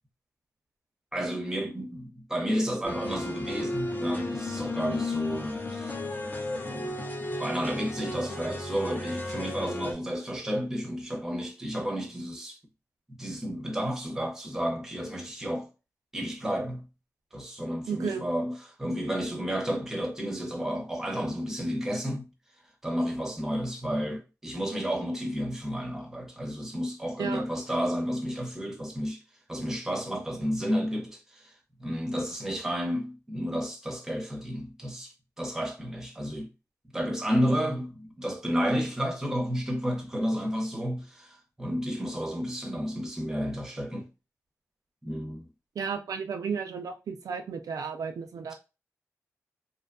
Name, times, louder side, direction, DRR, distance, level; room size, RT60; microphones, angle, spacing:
voice 1, 1.1-5.9 6.5-6.9 7.4-12.6 13.2-15.7 16.1-16.8 17.3-18.5 18.8-22.3 22.8-29.2 29.5-31.5 31.8-36.5 36.9-44.1 45.0-45.5, equal, 10° right, 0.7 m, -31 dB
sound 1, 2.8-9.9, left 2 dB, 30° left, 0.5 m, -34 dB
voice 2, 17.9-18.2 27.2-27.4 45.8-48.5, right 6 dB, 85° right, 0.3 m, -33 dB
2.6 x 2.2 x 2.5 m
wide cardioid pair, 110°, 6 cm